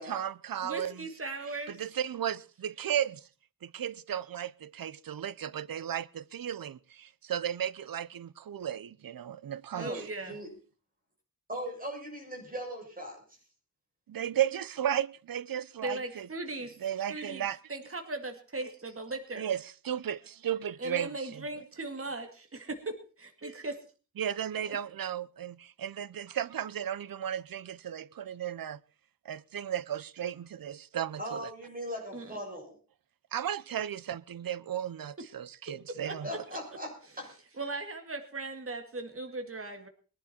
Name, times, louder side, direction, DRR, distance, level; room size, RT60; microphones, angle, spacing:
voice 1, 0.0-1.0 1.7-3.2 3.6-10.0 14.1-16.3 16.8-17.6 19.4-21.4 24.2-28.8 29.3-31.5 33.3-36.3, right 10 dB, 90° right, 0.7 m, -35 dB
voice 2, 0.6-1.8 9.7-10.3 15.8-16.8 17.1-19.5 20.8-23.8 24.6-24.8 32.1-32.4 36.0-36.6 37.6-39.9, right 2 dB, 40° right, 2.2 m, -38 dB
voice 3, 9.8-10.5 11.5-13.2 31.2-32.8 36.2-37.3, equal, 25° right, 7.3 m, -39 dB
22.0 x 11.0 x 4.3 m
wide cardioid pair, 115°, 34 cm